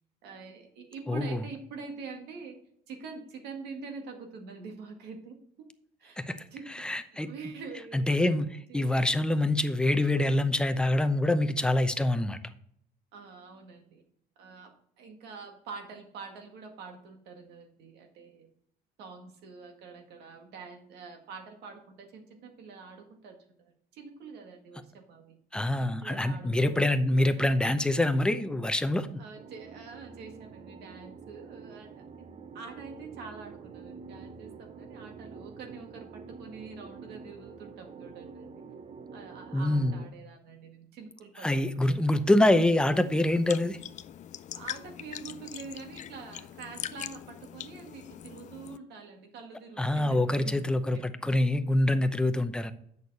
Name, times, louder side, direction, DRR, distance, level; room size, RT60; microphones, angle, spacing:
voice 1, 0.2-2.6 2.9-5.7 6.0-6.2 6.5-6.9 7.3-8.1 8.7-9.0 13.1-14.0 14.4-18.5 19.0-25.4 25.8-27.6 29.2-32.0 32.5-38.6 39.1-42.2 44.5-51.1, right 4 dB, 80° right, 4 dB, 1.8 m, -45 dB
voice 2, 1.1-1.4 6.2-6.4 6.7-7.3 7.9-12.4 25.5-29.1 39.5-40.0 41.4-43.8 49.8-52.7, left 1 dB, 5° left, 9 dB, 0.7 m, -25 dB
sound 1, 29.4-40.1, right 5 dB, 40° right, 0.6 m, -47 dB
sound 2, 42.9-48.8, left 10 dB, 45° left, 0.4 m, -42 dB
8.3 x 6.4 x 4.1 m, 0.67 s
cardioid pair, 110°, 17 cm